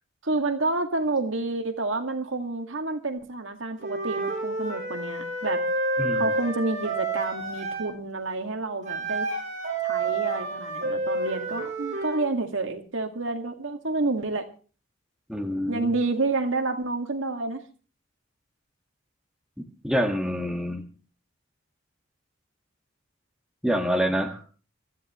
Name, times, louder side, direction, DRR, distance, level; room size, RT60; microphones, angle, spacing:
voice 1, 0.2-5.6 6.1-9.3 9.8-14.5 15.7-17.6, right 3 dB, 70° right, 5 dB, 2.1 m, -29 dB
Wind instrument woodwind instrument, 3.8-7.9 8.8-12.2, right 2 dB, 35° right, 6.9 m, -29 dB
voice 2, 15.3-15.9 19.8-20.8 23.6-24.4, equal, 5° right, 2 dB, 1.6 m, -26 dB
24.5 x 13.5 x 3.1 m, 0.37 s
head